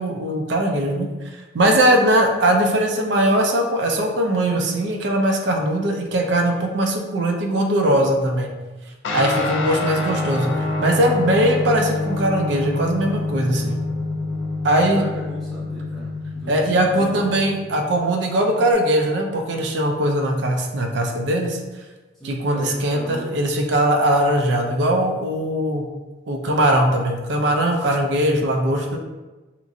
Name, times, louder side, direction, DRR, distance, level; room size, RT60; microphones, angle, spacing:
voice 1, 0.0-8.5 9.1-13.8 14.6-15.0 16.5-21.6 22.2-25.8 26.3-29.0, right 1 dB, 65° right, 3 dB, 0.4 m, -20 dB
Guitar, 9.0-18.7, left 2 dB, 80° left, 0.4 m, -27 dB
voice 2, 14.7-17.3 22.1-23.4, right 1 dB, ahead, -9 dB, 0.9 m, -37 dB
2.9 x 2.4 x 2.6 m, 1.2 s
head